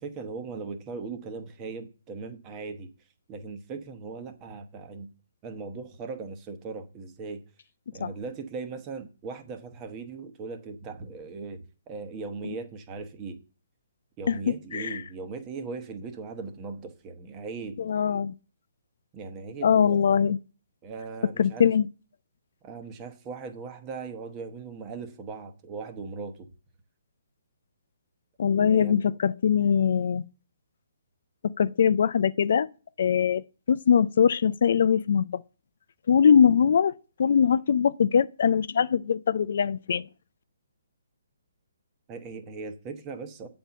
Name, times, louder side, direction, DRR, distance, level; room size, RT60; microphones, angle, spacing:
voice 1, 0.0-2.9 3.3-5.1 5.4-7.4 7.9-13.4 14.2-17.8 19.1-20.1 20.8-21.7 22.6-26.5 28.7-29.0 42.1-43.5, right 4 dB, 25° right, 1.1 m, -39 dB
voice 2, 17.8-18.3 19.6-20.4 21.4-21.9 28.4-30.2 31.4-32.7 33.0-33.4 33.7-35.4 36.1-36.9 37.2-40.1, left 7 dB, 60° left, 0.3 m, -22 dB
8.2 x 4.3 x 6.9 m
hypercardioid pair, 145°, 0 cm